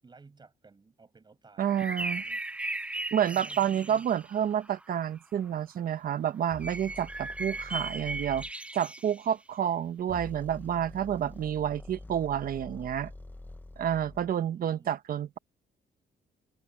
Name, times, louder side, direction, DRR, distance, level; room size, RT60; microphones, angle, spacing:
voice 1, 0.0-2.9 3.3-4.1 14.2-14.9, right 4 dB, 25° right, 7.3 m, -56 dB
voice 2, 1.6-2.2 3.1-13.1 13.8-15.4, right 9 dB, 55° right, 1.1 m, -29 dB
sound 1, 1.7-4.8 6.6-9.3, right 2 dB, 5° right, 0.4 m, -37 dB
sound 2, 6.5-8.5 10.0-14.3, left 2 dB, 10° left, 1.0 m, -46 dB
cardioid pair, 135°, 17 cm